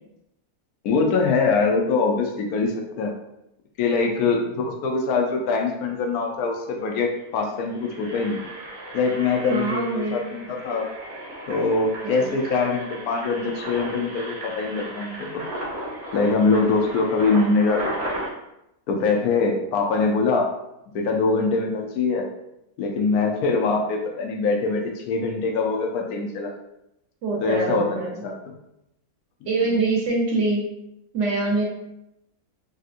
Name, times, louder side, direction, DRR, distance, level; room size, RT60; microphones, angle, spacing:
voice 1, 0.8-3.1 3.8-8.4 8.9-10.9 11.5-15.4 16.1-18.2 18.9-20.5 20.9-22.3 22.8-26.5 27.4-28.3, left 4 dB, 80° left, 1 dB, 1.1 m, -23 dB
Engine, 6.6-6.7 6.9-7.1 7.6-18.3, right 1 dB, 35° right, 0.5 m, -35 dB
voice 2, 9.5-10.3 12.0-12.4 27.2-28.2 29.5-30.6 31.1-31.6, right 3 dB, 60° right, -2 dB, 0.9 m, -24 dB
3.4 x 2.7 x 2.4 m, 0.84 s
omnidirectional pair, 1.6 m